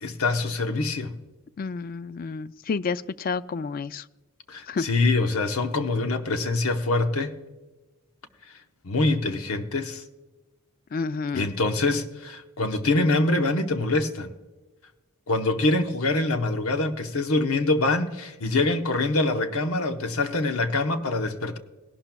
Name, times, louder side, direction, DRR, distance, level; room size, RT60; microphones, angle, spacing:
voice 1, 0.0-1.2 4.5-7.4 8.8-10.0 11.3-14.3 15.3-21.6, left 2 dB, 85° left, 1.0 m, -24 dB
voice 2, 1.6-4.0 4.7-4.9 10.9-11.5, left 4 dB, 40° left, 0.3 m, -30 dB
17.5 x 11.5 x 2.3 m
head